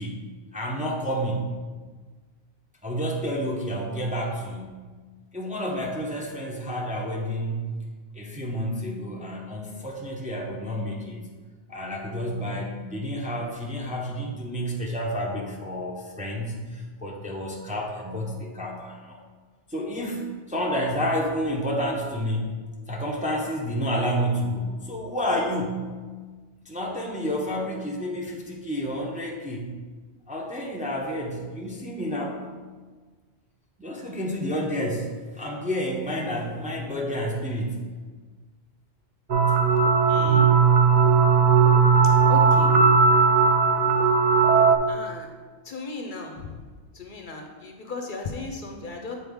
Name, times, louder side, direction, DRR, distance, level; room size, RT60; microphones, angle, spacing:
voice 1, 0.0-1.5 2.8-4.8 5.3-7.8 8.1-11.3 11.7-19.2 19.7-22.5 22.9-25.9 26.6-29.7 30.3-32.4 33.8-37.8, equal, 10° right, -2 dB, 0.6 m, -30 dB
sound 1, 39.3-44.8, right 5 dB, 50° right, 0.6 m, -18 dB
voice 2, 40.1-40.5 42.3-42.7 44.9-45.3 45.6-46.4 46.9-49.2, left 3 dB, 55° left, 3 dB, 0.7 m, -35 dB
7.7 x 3.9 x 3.5 m, 1.4 s
omnidirectional pair, 1.1 m